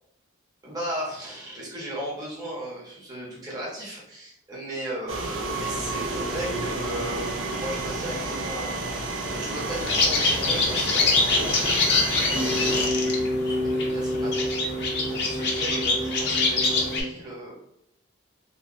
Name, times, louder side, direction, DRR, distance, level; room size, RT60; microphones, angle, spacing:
voice 1, 0.6-9.0 9.3-14.8 15.1-17.6, right 1 dB, 20° right, -6 dB, 0.7 m, -36 dB
sound 1, 5.1-12.9, right 2 dB, 75° right, 0.4 m, -30 dB
sound 2, 9.8-17.0, left 3 dB, 55° left, 0.5 m, -24 dB
2.9 x 2.2 x 2.5 m, 0.77 s
head